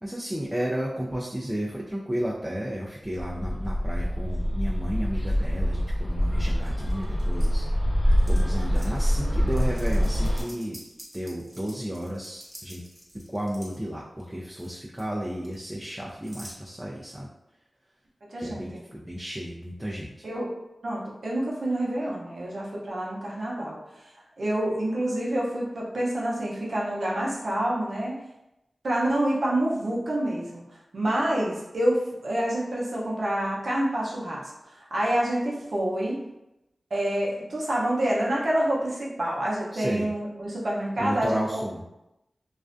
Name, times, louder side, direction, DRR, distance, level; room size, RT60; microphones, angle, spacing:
voice 1, 0.0-7.7 8.2-10.8 11.1-12.8 13.3-17.3 18.4-20.2 39.7-40.1 41.0-41.8, equal, 10° right, -4 dB, 0.4 m, -33 dB
Bird, 3.1-10.4, equal, 55° left, 1.0 m, -25 dB
sound 1, 6.6-7.5 8.1-8.4 8.7-9.0 9.5-13.8 14.2-14.7 15.0-16.6, right 1 dB, 30° right, 0.8 m, -47 dB
voice 2, 18.3-18.8 20.2-20.5 20.8-23.8 24.4-28.2 28.8-30.6 30.9-36.2 36.9-41.6, right 1 dB, 75° right, -4 dB, 0.6 m, -27 dB
2.4 x 2.1 x 2.4 m, 0.91 s
cardioid pair, 55°, 0 cm